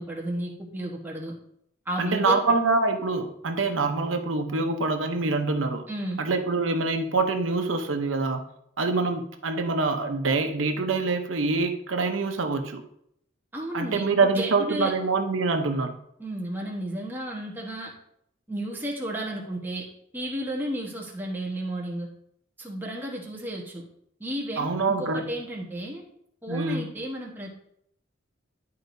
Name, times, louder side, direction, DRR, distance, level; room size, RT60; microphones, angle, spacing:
voice 1, 0.0-1.3 1.9-2.4 5.9-6.2 13.5-14.9 16.2-17.9 18.5-19.8 20.1-22.1 22.6-23.8 24.2-26.0 26.4-27.5, right 1 dB, 10° right, -2 dB, 1.1 m, -32 dB
voice 2, 2.0-5.9 6.2-8.4 8.8-12.8 13.7-16.0 24.6-25.2 26.5-26.9, right 3 dB, 85° right, 5 dB, 0.8 m, -25 dB
11.0 x 4.7 x 2.7 m, 0.72 s
head